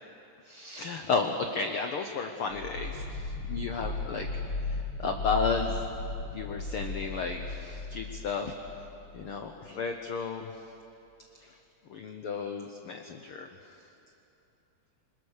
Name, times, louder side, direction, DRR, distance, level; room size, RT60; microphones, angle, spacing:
voice 1, 0.4-4.3 4.7-5.8 6.3-8.5 9.1-10.5 11.3-11.6 11.9-13.5, left 4 dB, 85° left, 5 dB, 1.2 m, -33 dB
sound 1, 2.5-9.2, left 3 dB, 40° left, 7.4 m, -36 dB
26.0 x 21.5 x 6.7 m, 2.8 s
omnidirectional pair, 3.9 m